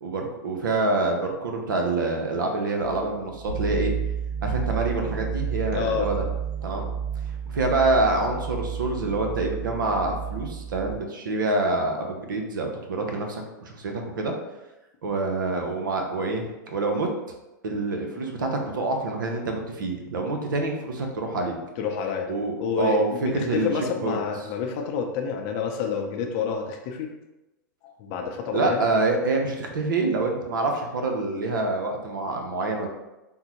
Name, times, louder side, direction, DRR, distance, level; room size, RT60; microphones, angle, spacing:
voice 1, 0.0-3.9 4.4-6.2 6.6-6.9 7.5-14.3 15.0-17.1 17.6-21.5 22.3-24.2 28.5-32.9, right 2 dB, 80° right, 3 dB, 0.6 m, -26 dB
sound 1, 2.8-11.0, right 7 dB, 90° left, 0.6 m, -31 dB
voice 2, 5.7-6.1 21.8-22.3 22.6-27.1 27.8-28.8, left 6 dB, 45° left, 3 dB, 0.5 m, -28 dB
3.6 x 2.0 x 2.9 m, 1.0 s
hypercardioid pair, 110°, 11 cm